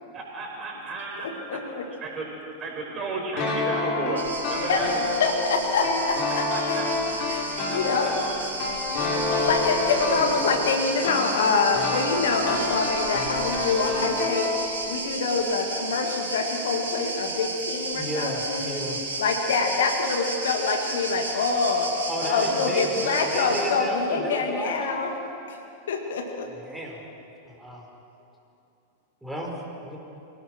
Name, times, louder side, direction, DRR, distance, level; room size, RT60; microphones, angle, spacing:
voice 1, 0.1-1.3 1.7-2.3 2.6-4.9 6.5-6.9 7.7-8.4 9.9-10.5 22.4-22.6, right 3 dB, 25° right, 0 dB, 5.4 m, -33 dB
voice 2, 1.2-1.9 4.6-4.8 5.2-6.5 7.3-8.1 9.4-18.8 19.2-25.2 25.5-25.6 25.9-26.5, left 4 dB, 60° left, 4 dB, 1.9 m, -26 dB
sound 1, 3.4-15.0 15.3-15.4, left 3 dB, 45° left, 4.9 m, -29 dB
sound 2, 4.2-23.7, right 3 dB, 70° right, 3.5 m, -33 dB
voice 3, 17.9-19.0 22.1-25.0 26.6-27.0 27.5-27.8 29.2-30.0, equal, 5° right, -2 dB, 4.9 m, -33 dB
24.0 x 18.0 x 6.3 m, 2.8 s
figure-of-eight pair, 90°, 0 cm